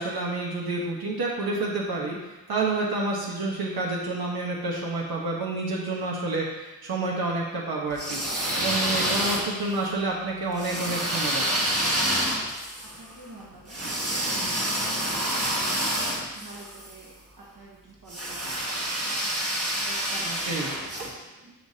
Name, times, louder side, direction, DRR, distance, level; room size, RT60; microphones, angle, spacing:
voice 1, 0.0-2.2 2.5-11.5 20.5-20.7, right 2 dB, 80° right, -2 dB, 1.0 m, -29 dB
sound 1, 7.9-9.8 10.6-16.9 18.1-21.1, right 1 dB, 40° right, 1.3 m, -28 dB
voice 2, 12.8-14.2 14.6-15.8 16.3-21.5, right 2 dB, 55° right, -4 dB, 1.2 m, -47 dB
10.0 x 3.5 x 2.8 m, 1.1 s
cardioid pair, 50°, 37 cm